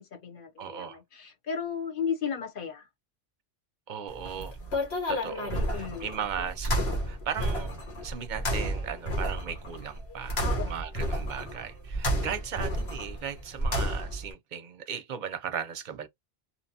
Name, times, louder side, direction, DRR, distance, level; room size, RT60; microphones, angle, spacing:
voice 1, 0.0-2.9 5.5-6.1 6.4-6.5 10.4-10.7, left 7 dB, 60° left, 1.0 m, -35 dB
voice 2, 0.6-1.0 3.9-4.6 5.1-6.8 7.1-16.1, right 8 dB, 55° right, 0.6 m, -37 dB
sound 1, 4.1-14.3, equal, 85° left, 1.4 m, -31 dB
2.8 x 2.1 x 2.7 m
omnidirectional pair, 1.1 m